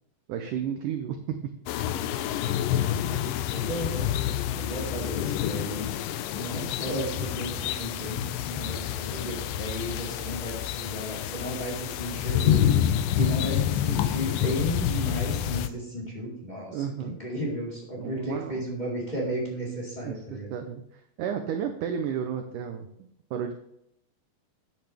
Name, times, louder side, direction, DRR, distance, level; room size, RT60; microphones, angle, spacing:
voice 1, 0.3-1.5 13.2-13.4 16.7-17.2 18.0-18.6 20.0-20.8 21.2-22.9 23.3-23.5, right 8 dB, 75° right, 6 dB, 2.0 m, -32 dB
sound 1, 1.7-15.7, left 11 dB, 80° left, 2.1 m, -28 dB
voice 2, 3.5-4.2 4.5-5.9 6.3-12.7 13.2-20.5, equal, 10° left, -5 dB, 3.7 m, -34 dB
13.5 x 9.1 x 3.5 m, 0.77 s
omnidirectional pair, 4.5 m